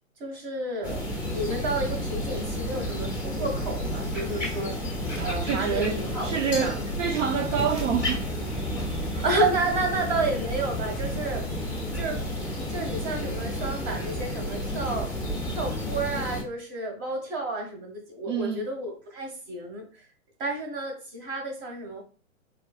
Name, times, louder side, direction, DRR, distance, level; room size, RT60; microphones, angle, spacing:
voice 1, 0.2-1.0 1.3-4.9 5.2-6.8 9.2-11.5 11.9-15.1 15.5-20.0 20.4-22.0, right 2 dB, 35° right, 1.7 m, -31 dB
sound 1, 0.8-16.4, equal, 5° right, 0.8 m, -31 dB
voice 2, 5.2-8.3 9.1-9.2 18.3-18.6, right 7 dB, 65° right, 0.7 m, -28 dB
Glass, 6.5-7.7, left 6 dB, 20° left, 1.0 m, -41 dB
4.5 x 4.1 x 2.4 m
hypercardioid pair, 135°, 40 cm